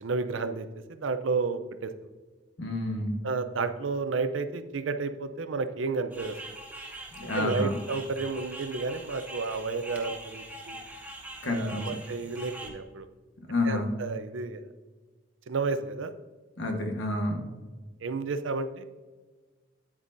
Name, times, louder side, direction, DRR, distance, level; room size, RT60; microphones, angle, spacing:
voice 1, 0.0-1.9 3.2-6.6 7.3-10.8 11.4-13.1 13.6-14.6 15.5-16.1 18.0-18.9, right 4 dB, 85° right, 10 dB, 0.5 m, -31 dB
voice 2, 2.6-3.2 7.1-7.8 11.4-11.8 13.5-13.9 16.6-17.4, left 2 dB, 75° left, 4 dB, 1.2 m, -29 dB
sound 1, 6.1-12.7, right 1 dB, 10° right, 1.0 m, -43 dB
8.9 x 8.1 x 2.6 m, 1.4 s
head